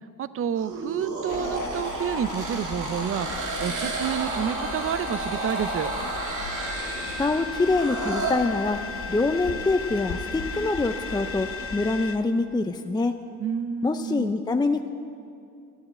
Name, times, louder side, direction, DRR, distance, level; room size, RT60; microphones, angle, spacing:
voice 1, 0.2-5.9 13.4-14.3, right 8 dB, 45° right, 15 dB, 0.6 m, -29 dB
sound 1, 0.6-8.3, right 3 dB, 80° right, 2.3 m, -32 dB
sound 2, 1.3-12.3, left 5 dB, 85° left, 1.6 m, -38 dB
sound 3, 4.4-12.2, left 3 dB, 45° left, 1.0 m, -37 dB
voice 2, 7.0-8.8 9.1-13.2 13.8-14.9, left 3 dB, 15° left, 6 dB, 0.5 m, -25 dB
12.5 x 7.9 x 9.6 m, 2.5 s
cardioid pair, 90°, 30 cm